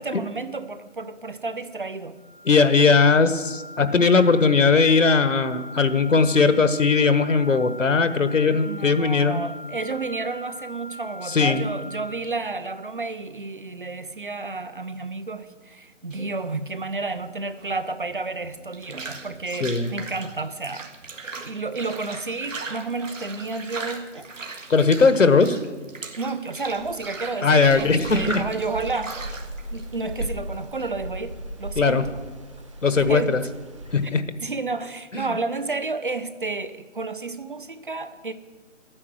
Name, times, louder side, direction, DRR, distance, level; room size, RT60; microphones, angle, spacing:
voice 1, 0.0-2.2 8.5-20.9 21.4-24.3 26.2-29.2 29.7-32.2 33.0-33.4 34.0-34.1 34.4-38.3, right 3 dB, 45° right, 12 dB, 0.7 m, -31 dB
sound 1, 2.2-12.1, equal, 40° left, 0.7 m, -41 dB
voice 2, 2.5-9.4 11.3-11.6 19.6-19.9 24.7-25.6 27.4-28.4 31.8-32.0 32.8-33.4 33.9-34.2 35.1-35.3, left 4 dB, 75° left, 12 dB, 1.3 m, -19 dB
sound 2, 16.1-30.9, right 3 dB, 80° right, 1.8 m, -39 dB
sound 3, 26.6-34.1, right 1 dB, 25° right, 1.0 m, -37 dB
12.0 x 9.8 x 7.6 m, 1.3 s
figure-of-eight pair, 165°, 38 cm